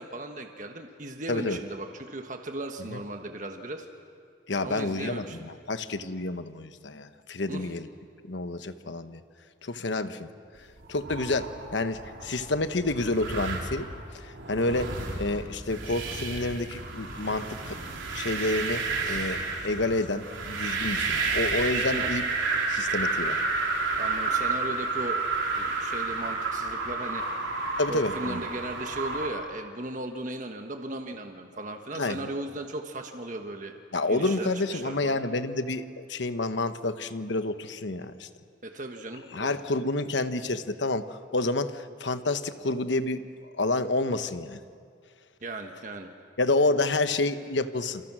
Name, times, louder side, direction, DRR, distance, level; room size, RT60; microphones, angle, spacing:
voice 1, 0.0-3.9 4.6-5.4 7.5-7.7 19.0-19.3 21.8-22.1 24.0-25.2 25.6-27.6 27.9-33.7 34.1-35.2 38.6-39.5 45.4-46.1, right 2 dB, 40° right, 4 dB, 1.4 m, -37 dB
voice 2, 1.3-1.6 2.9-3.0 4.5-7.9 8.3-9.2 9.6-10.3 10.9-13.9 14.1-17.8 18.1-22.2 22.7-23.4 27.8-28.4 31.9-32.3 33.9-38.3 39.3-43.2 43.6-44.6 46.4-48.0, left 2 dB, 70° left, 10 dB, 1.1 m, -29 dB
sound 1, 10.8-29.3, right 3 dB, 85° right, 3.9 m, -31 dB
28.0 x 27.5 x 6.2 m, 2.2 s
head